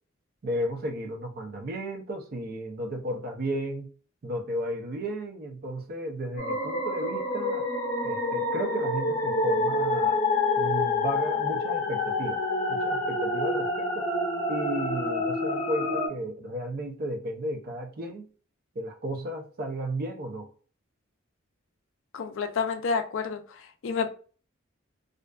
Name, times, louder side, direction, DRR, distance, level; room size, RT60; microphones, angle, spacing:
voice 1, 0.4-3.9 4.2-7.6 8.0-10.2 10.6-12.4 12.7-14.1 14.5-18.2 18.8-20.5, equal, 45° right, 0.5 m, -33 dB
sound 1, 6.4-16.1, left 2 dB, 40° left, 0.7 m, -27 dB
voice 2, 22.1-24.1, left 5 dB, 65° left, 0.4 m, -30 dB
2.5 x 2.3 x 2.2 m
head